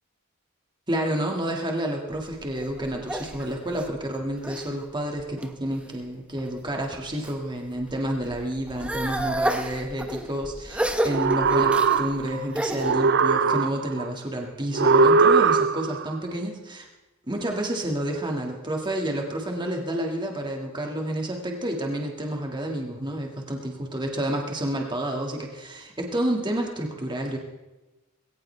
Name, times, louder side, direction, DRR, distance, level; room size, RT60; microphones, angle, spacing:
voice 1, 0.9-16.9 17.3-27.4, right 1 dB, 20° right, 1 dB, 1.9 m, -29 dB
sound 1, 2.1-4.7 5.2-5.8 6.4-7.4 7.7-12.9, right 1 dB, 5° right, 1.0 m, -31 dB
sound 2, 11.0-12.4 12.8-14.0 14.7-16.0, right 4 dB, 55° right, 0.6 m, -20 dB
20.0 x 17.5 x 3.4 m, 1.1 s
head